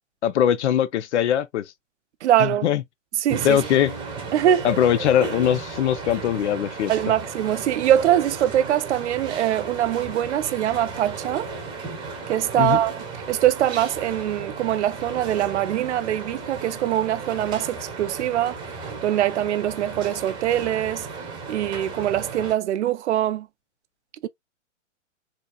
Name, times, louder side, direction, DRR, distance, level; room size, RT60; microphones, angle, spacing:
voice 1, 0.2-1.6 2.4-2.8 3.4-3.9 4.6-6.9 12.6-12.8, left 10 dB, 60° left, 0.6 m, -21 dB
voice 2, 2.2-2.7 3.2-3.6 4.3-4.7 6.9-11.5 12.3-18.6 19.0-21.1 21.5-23.5 24.2-24.3, right 12 dB, 65° right, 0.5 m, -23 dB
sound 1, 3.3-22.5, right 4 dB, 10° right, 0.9 m, -35 dB
4.2 x 2.8 x 2.3 m
hypercardioid pair, 145°, 38 cm